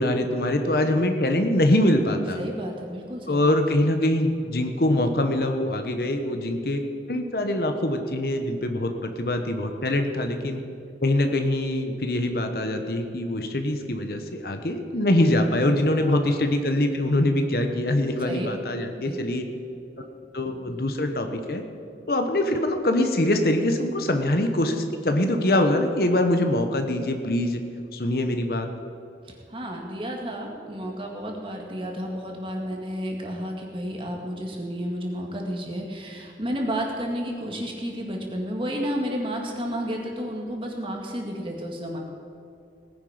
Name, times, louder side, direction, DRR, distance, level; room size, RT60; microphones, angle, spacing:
voice 1, 0.0-2.4 3.2-6.8 7.1-10.6 11.0-19.4 20.3-21.6 22.1-27.6 27.9-28.7, left 1 dB, 55° left, 5 dB, 1.1 m, -23 dB
voice 2, 2.4-3.5 15.9-16.5 18.2-18.5 19.0-19.2 20.4-20.8 29.3-42.0, equal, 30° right, 1 dB, 2.0 m, -32 dB
18.5 x 10.0 x 5.1 m, 2.5 s
head